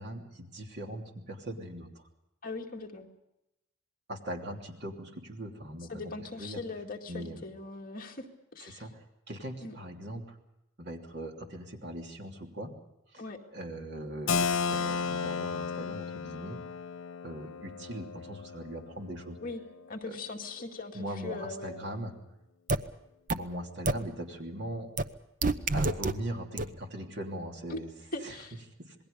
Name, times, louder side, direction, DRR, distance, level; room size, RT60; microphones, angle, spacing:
voice 1, 0.0-2.1 4.1-6.6 7.1-7.4 8.6-10.4 10.8-12.7 13.1-13.2 13.5-16.6 17.2-19.4 20.0-20.2 20.9-22.1 23.3-24.9 25.7-27.9 28.2-28.4 28.8-28.9, right 1 dB, 55° right, 2 dB, 3.0 m, -40 dB
voice 2, 2.4-3.1 5.9-8.3 8.5-8.8 9.6-9.7 13.2-13.4 19.4-19.6 19.9-21.9 27.7-27.8 28.1-28.6, left 3 dB, 45° left, 1 dB, 2.1 m, -40 dB
Keyboard (musical), 14.3-19.8, left 5 dB, 90° left, 1.0 m, -34 dB
sound 1, 22.7-22.8 23.3-23.4 23.9-24.0 25.0-25.1 25.4-26.1 26.6-26.7, right 3 dB, 40° right, 0.8 m, -26 dB
27.5 x 20.5 x 5.3 m, 0.88 s
head